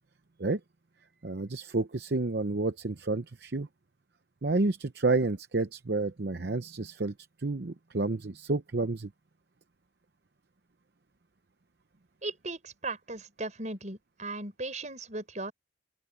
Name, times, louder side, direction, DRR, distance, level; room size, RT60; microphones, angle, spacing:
voice 1, 1.2-3.7 4.4-9.1, right 3 dB, 60° right, 0.8 m, -30 dB
voice 2, 12.2-15.5, right 2 dB, 40° right, 6.0 m, -37 dB
open air
head